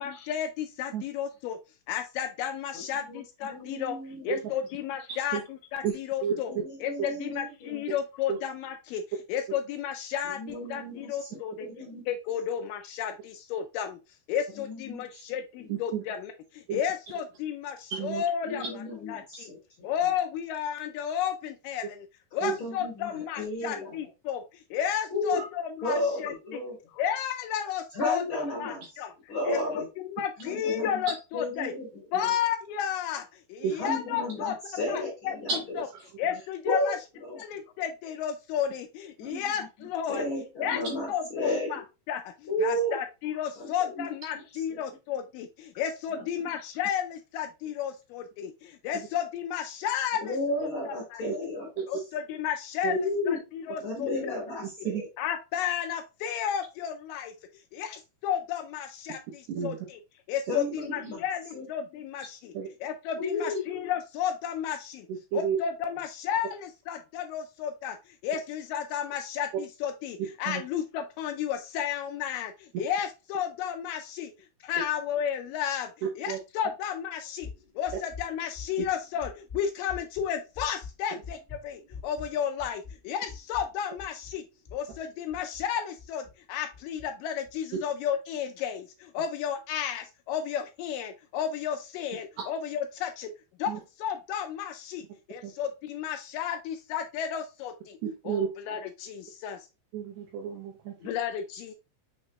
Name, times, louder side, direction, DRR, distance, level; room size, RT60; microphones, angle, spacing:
voice 1, 0.0-1.6 1.9-4.0 4.2-5.4 5.7-6.5 6.8-9.0 9.3-11.7 12.1-14.0 14.3-18.6 19.1-19.5 19.8-22.1 22.3-26.6 26.9-29.1 29.5-31.7 32.1-35.4 35.8-35.9 36.2-37.0 37.4-40.3 40.6-40.8 41.1-41.8 42.1-51.2 51.9-54.1 55.2-57.3 57.7-60.0 60.3-62.5 62.8-65.1 65.3-74.3 74.6-75.9 76.2-77.5 77.8-84.4 84.7-93.3 93.6-98.0 98.3-99.7 101.0-101.7, left 9 dB, 85° left, 6 dB, 1.9 m, -33 dB
voice 2, 3.5-4.4 6.5-7.8 10.4-12.0 14.6-15.0 15.6-15.7 18.5-19.9 22.4-23.9 25.1-25.4 25.8-26.8 27.9-28.8 29.3-29.9 30.4-30.9 31.3-31.9 33.8-35.5 36.6-36.9 37.3-37.4 39.2-39.5 40.1-41.8 42.5-42.9 43.6-43.7 44.0-44.1 46.2-46.3 50.3-51.7 52.9-53.4 53.8-54.9 60.5-61.2 61.5-61.7 63.2-63.6, left 1 dB, 45° left, -4 dB, 2.0 m, -32 dB
voice 3, 5.1-5.4 5.8-6.0 6.2-6.3 8.3-8.4 15.7-16.0 16.7-16.8 17.9-18.2 22.4-22.5 25.4-25.5 32.1-32.2 33.6-33.7 35.5-35.6 51.2-51.3 52.8-53.0 54.8-55.0 59.5-59.8 62.5-62.7 65.1-65.6 70.5-70.6 76.3-76.4 78.8-78.9 93.7-93.8 95.4-95.5 98.0-98.5 99.9-101.0, right 7 dB, 85° right, 0 dB, 1.6 m, -31 dB
sound 1, 77.4-86.4 86.7-87.1 87.4-87.8, left 5 dB, 20° left, 1.6 m, -45 dB
5.8 x 3.2 x 2.8 m, 0.28 s
omnidirectional pair, 4.3 m